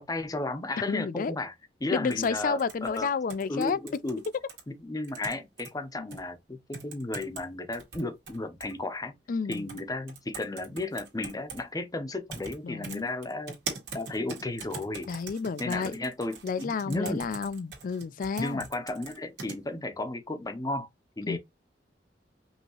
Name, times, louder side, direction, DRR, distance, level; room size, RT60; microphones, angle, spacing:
voice 1, 0.0-1.5 1.8-3.1 3.5-4.2 4.8-9.1 9.5-13.6 13.9-15.1 15.6-17.2 18.4-20.9 21.2-21.4, left 2 dB, 20° left, 0.7 m, -34 dB
voice 2, 0.9-1.4 1.9-3.8 6.0-6.1 9.3-9.7 12.6-13.1 15.1-15.9 16.4-18.6 21.3-21.4, left 5 dB, 50° left, 0.4 m, -31 dB
sound 1, 2.1-4.6 5.0-5.7 6.1-6.2 6.7-7.4 7.7-8.7 9.5-9.8 10.1-11.6 12.3-12.5 12.8-19.6, right 5 dB, 75° right, 1.9 m, -41 dB
5.3 x 2.8 x 3.0 m
head